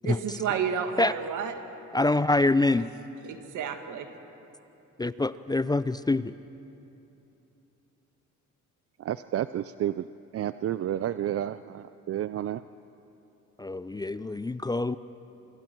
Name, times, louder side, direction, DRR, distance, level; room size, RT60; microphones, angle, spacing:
voice 1, 0.0-1.5 3.2-4.1, right 7 dB, 75° right, 6 dB, 1.9 m, -31 dB
voice 2, 1.9-2.9 5.0-6.3 13.6-15.0, left 2 dB, 15° left, 14 dB, 0.4 m, -25 dB
voice 3, 9.0-10.1 10.3-12.6, right 11 dB, 50° right, 14 dB, 0.5 m, -30 dB
28.0 x 25.5 x 4.6 m, 3.0 s
cardioid pair, 90°, 30 cm